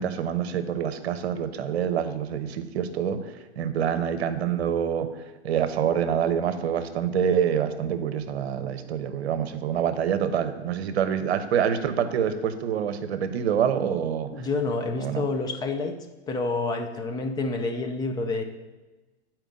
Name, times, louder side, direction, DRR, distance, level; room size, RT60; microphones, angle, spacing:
voice 1, 0.0-5.1 5.4-14.5 15.0-15.2, right 8 dB, 70° right, 10 dB, 0.8 m, -26 dB
voice 2, 14.3-16.0 16.3-18.4, left 3 dB, 10° left, 5 dB, 0.4 m, -28 dB
9.0 x 4.4 x 3.8 m, 1.1 s
hypercardioid pair, 120°, 34 cm